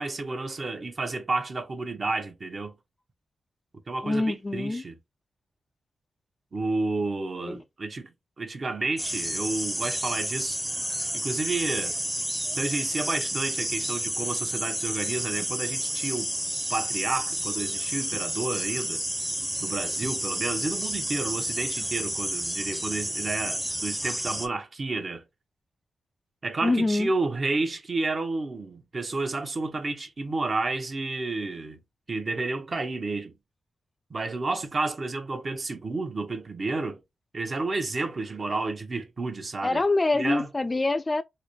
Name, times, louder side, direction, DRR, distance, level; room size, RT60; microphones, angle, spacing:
voice 1, 0.0-2.7 3.9-5.0 6.5-8.1 8.4-10.6 11.1-12.0 12.6-16.3 16.7-19.0 19.6-25.2 26.4-31.8 32.1-33.3 34.1-37.0 37.3-39.8 40.1-40.5, right 3 dB, 45° right, 0.8 m, -31 dB
voice 2, 4.0-4.8 7.4-7.6 26.6-27.1 39.6-41.2, left 2 dB, 25° left, 0.3 m, -25 dB
sound 1, 9.0-24.5, equal, 5° right, 0.7 m, -30 dB
3.9 x 2.0 x 3.1 m
cardioid pair, 80°, 0 cm